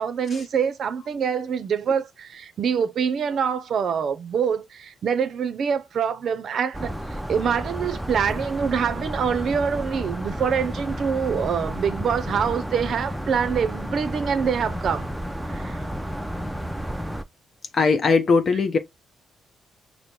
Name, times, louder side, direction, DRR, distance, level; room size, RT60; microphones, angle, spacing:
voice 1, 0.0-6.9 7.3-15.1 15.5-15.8, right 7 dB, 60° right, 0.5 m, -25 dB
sound 1, 6.7-17.2, equal, 5° right, 0.5 m, -31 dB
voice 2, 17.7-18.8, left 4 dB, 45° left, 0.7 m, -19 dB
5.0 x 2.0 x 4.5 m
cardioid pair, 90°, 0 cm